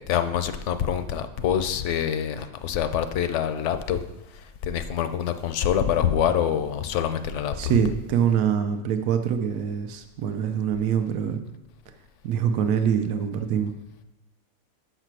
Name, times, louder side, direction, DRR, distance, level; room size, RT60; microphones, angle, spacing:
voice 1, 0.0-4.0 4.3-7.8, left 9 dB, 65° left, 10 dB, 0.8 m, -26 dB
voice 2, 7.6-11.4 12.2-13.7, right 8 dB, 85° right, 7 dB, 1.1 m, -24 dB
5.8 x 5.7 x 6.0 m, 0.97 s
omnidirectional pair, 1.5 m